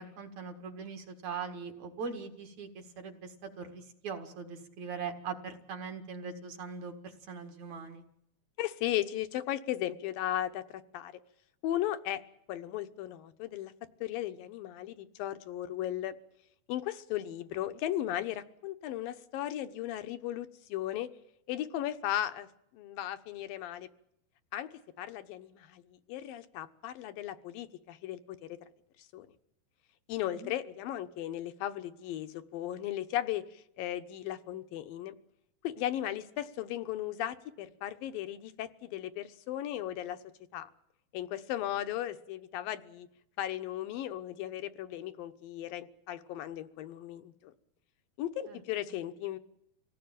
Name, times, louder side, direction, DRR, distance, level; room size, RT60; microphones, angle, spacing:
voice 1, 0.0-8.0 30.3-30.5 48.5-48.6, right 5 dB, 55° right, 5 dB, 2.9 m, -41 dB
voice 2, 8.6-11.1 11.6-12.2 12.5-13.7 14.0-16.1 16.7-21.1 21.5-22.5 22.7-23.9 24.5-28.6 29.1-29.3 30.1-33.4 33.8-35.2 35.6-40.2 40.5-40.7 41.1-43.1 43.4-47.5 48.2-49.4, left 12 dB, 75° left, 10 dB, 2.7 m, -36 dB
26.0 x 17.5 x 8.9 m, 0.77 s
omnidirectional pair, 4.4 m